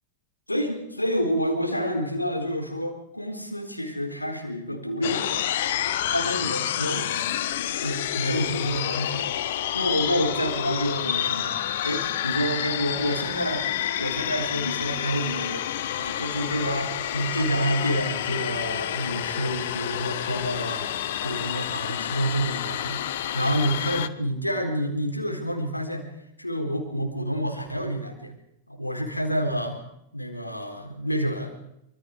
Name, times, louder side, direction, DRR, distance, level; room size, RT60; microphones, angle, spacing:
voice 1, 0.5-5.6 6.1-7.3 7.7-9.4 9.7-11.6 11.8-13.7 14.0-15.7 16.0-20.8 21.2-23.0 23.3-26.1 26.4-28.3 28.7-29.8 30.1-31.5, equal, 85° left, 3 dB, 4.0 m, -28 dB
sound 1, 5.0-24.1, left 11 dB, 55° left, 1.0 m, -29 dB
25.5 x 24.5 x 4.8 m, 0.79 s
figure-of-eight pair, 90°, 0 cm